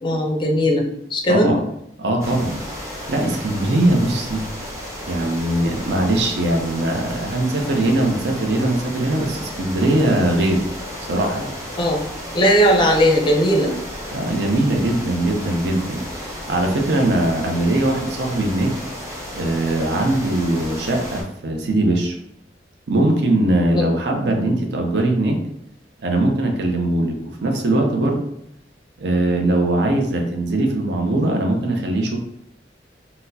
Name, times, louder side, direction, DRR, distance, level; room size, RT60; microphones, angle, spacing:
voice 1, 0.0-1.5 11.8-12.0 12.3-13.7 23.7-23.9 24.3-24.6, equal, 25° left, 1 dB, 0.5 m, -18 dB
voice 2, 1.3-1.6 2.0-4.4 5.1-10.7 11.1-11.5 14.1-18.7 19.3-22.2 22.9-25.4 26.0-28.3 29.0-32.2, right 1 dB, 65° right, 2 dB, 0.5 m, -21 dB
sound 1, 2.2-21.2, equal, 15° right, 0.7 m, -33 dB
4.0 x 2.1 x 2.6 m, 0.78 s
head